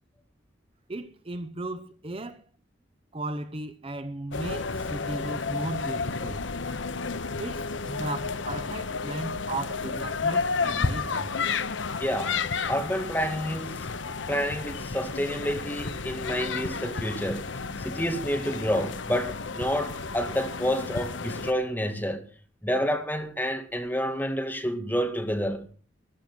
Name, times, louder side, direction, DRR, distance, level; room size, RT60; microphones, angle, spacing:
voice 1, 0.9-2.4 3.1-6.4 7.4-11.4, right 2 dB, 30° right, 0.8 m, -36 dB
sound 1, 4.3-21.5, left 4 dB, 80° left, 0.9 m, -32 dB
voice 2, 12.0-17.5 17.8-22.2 22.6-25.7, equal, 10° left, 2.0 m, -29 dB
14.0 x 12.5 x 6.2 m
head